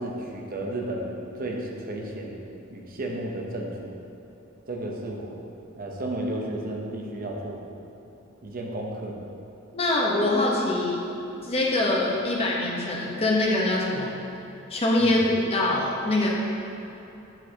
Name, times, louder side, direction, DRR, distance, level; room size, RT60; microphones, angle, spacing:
voice 1, 0.0-2.4 2.7-4.0 4.7-5.4 5.8-7.6 8.4-9.2 15.0-15.2, right 1 dB, 45° right, 0 dB, 0.8 m, -33 dB
voice 2, 9.7-11.0 11.4-14.1 14.7-16.3, left 2 dB, 30° left, -3 dB, 1.0 m, -24 dB
8.1 x 6.6 x 2.9 m, 3.0 s
head